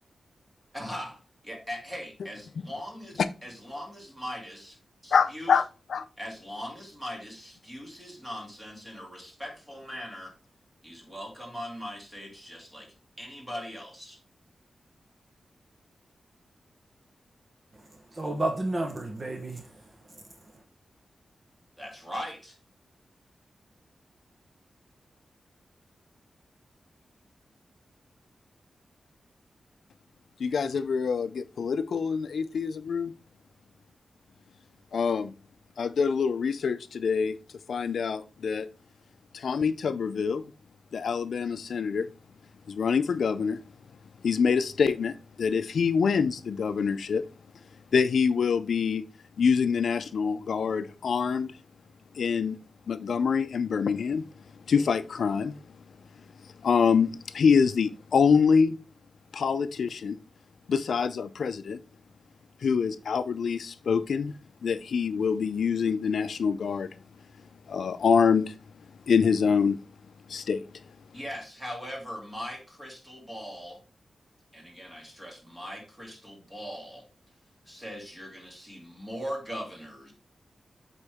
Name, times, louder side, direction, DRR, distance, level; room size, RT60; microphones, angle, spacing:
voice 1, 0.7-4.8 5.0-5.6 6.2-10.3 10.8-14.2 21.8-22.6 71.1-73.8 74.5-77.0 77.7-80.1, equal, 10° right, 2.7 m, -40 dB
voice 2, 5.1-5.6 5.9-6.0 30.4-33.1 34.9-35.3 35.8-37.3 37.7-38.7 39.3-40.4 40.9-42.1 42.7-43.6 44.2-47.2 47.9-49.0 49.4-51.6 52.1-52.6 52.9-54.2 54.7-55.6 56.4-58.8 59.3-60.2 60.7-61.8 62.6-64.3 64.6-66.9 67.7-68.6 69.1-69.8 70.3-70.6, left 6 dB, 80° left, 0.4 m, -25 dB
voice 3, 17.7-20.6, right 2 dB, 35° right, 1.0 m, -33 dB
8.1 x 4.3 x 3.5 m
wide cardioid pair, 125°, 0 cm